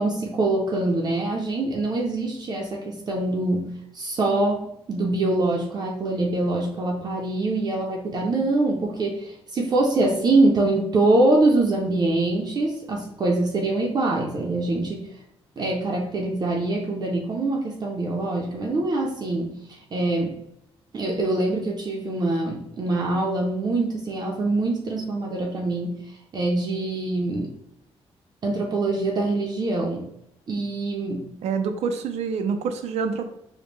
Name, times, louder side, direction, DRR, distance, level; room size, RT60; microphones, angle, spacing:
voice 1, 0.0-15.1 15.6-19.5 19.9-20.4 20.9-26.0 26.3-27.5 28.4-30.1 30.5-31.3, right 2 dB, 40° right, -1 dB, 0.5 m, -24 dB
voice 2, 31.4-33.3, right 5 dB, 90° right, 7 dB, 0.4 m, -26 dB
5.1 x 2.1 x 3.1 m, 0.78 s
cardioid pair, 150°, 11 cm